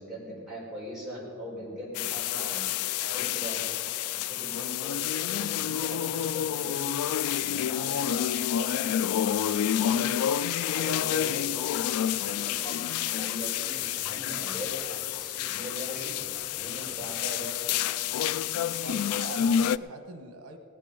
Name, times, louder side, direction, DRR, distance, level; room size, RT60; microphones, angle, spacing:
voice 1, 0.0-2.6 3.1-3.7 4.1-10.0 10.6-11.5 11.9-12.8 13.1-14.7 15.2-17.6, equal, ahead, -7 dB, 4.3 m, -41 dB
sound 1, 1.9-19.8, left 10 dB, 85° left, 0.3 m, -29 dB
sound 2, 10.5-19.1, left 2 dB, 35° left, 0.6 m, -54 dB
voice 2, 18.8-20.6, right 2 dB, 90° right, 5 dB, 1.2 m, -42 dB
18.0 x 10.0 x 5.3 m, 2.6 s
head